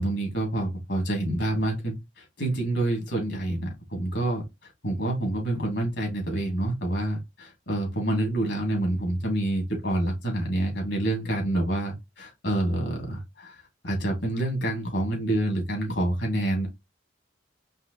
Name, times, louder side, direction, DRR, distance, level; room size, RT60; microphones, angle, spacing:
voice 1, 0.0-4.4 4.8-16.7, right 1 dB, 60° left, 2.7 m, -27 dB
5.5 x 3.1 x 3.0 m
head